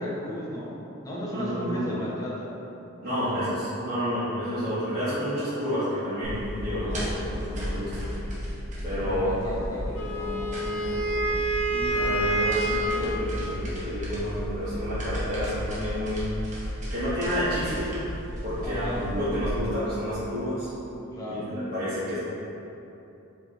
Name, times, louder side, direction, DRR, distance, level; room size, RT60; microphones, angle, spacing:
voice 1, 0.0-2.5 3.2-3.4 6.7-7.4 9.0-11.3 18.6-19.0 21.1-21.5, equal, 15° left, -8 dB, 0.8 m, -35 dB
voice 2, 1.3-1.9 3.0-8.1 8.8-9.6 11.7-16.3 16.9-17.9 18.4-20.7 21.3-22.2, equal, 55° right, -15 dB, 1.1 m, -30 dB
sound 1, 6.2-19.6, equal, 35° right, 0.8 m, -34 dB
Wind instrument woodwind instrument, 9.9-13.2, right 2 dB, 80° left, 0.5 m, -27 dB
4.7 x 3.0 x 2.9 m, 2.9 s
head